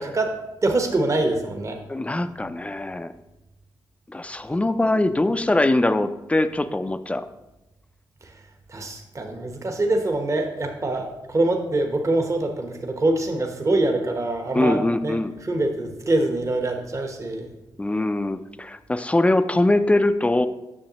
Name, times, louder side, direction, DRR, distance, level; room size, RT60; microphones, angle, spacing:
voice 1, 0.0-1.8 8.2-8.4 8.7-15.2 15.4-17.5, right 2 dB, 40° right, 4 dB, 1.1 m, -24 dB
voice 2, 1.9-3.1 4.1-7.3 14.5-15.3 17.8-20.5, left 2 dB, 15° left, 11 dB, 0.4 m, -22 dB
8.6 x 6.4 x 3.0 m, 1.0 s
cardioid pair, 60°, 8 cm